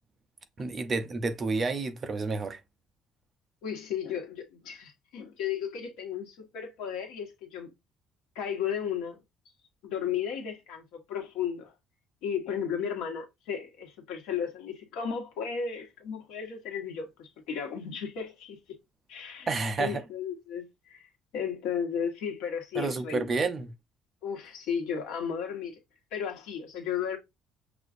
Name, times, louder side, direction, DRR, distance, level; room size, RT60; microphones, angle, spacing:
voice 1, 0.6-2.6 19.5-20.0 22.7-23.7, right 3 dB, 25° right, 0.5 m, -30 dB
voice 2, 3.6-7.7 8.3-9.2 9.8-11.7 12.2-18.6 19.1-19.5 19.8-21.1 21.3-23.3 24.2-25.7 26.1-27.2, left 7 dB, 85° left, 1.3 m, -34 dB
6.0 x 2.4 x 2.5 m
cardioid pair, 180°, 0 cm